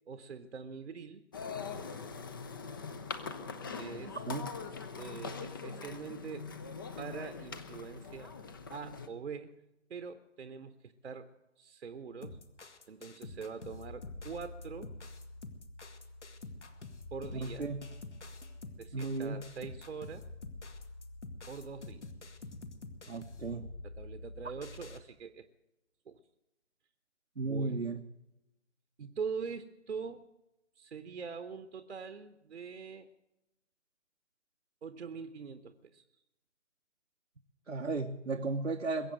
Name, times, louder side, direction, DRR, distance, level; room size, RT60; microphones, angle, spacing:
voice 1, 0.1-1.2 3.8-4.2 5.0-6.5 7.0-8.3 8.7-9.5 9.9-11.3 11.6-12.4 12.9-14.9 17.1-17.7 18.8-20.3 21.5-22.1 23.8-25.5 26.1-26.2 27.4-28.0 29.0-30.3 30.8-33.1 34.8-36.0, right 6 dB, 65° right, 10 dB, 1.0 m, -43 dB
sound 1, 1.3-9.1, left 5 dB, 20° left, 0.5 m, -42 dB
voice 2, 3.9-4.5 17.3-17.9 18.9-19.5 23.1-23.7 27.4-28.0 37.7-39.1, right 3 dB, 90° right, 3 dB, 1.1 m, -35 dB
sound 2, 12.2-25.0, left 2 dB, 70° left, 1.9 m, -47 dB
21.5 x 8.3 x 7.7 m, 0.94 s
figure-of-eight pair, 140°, 36 cm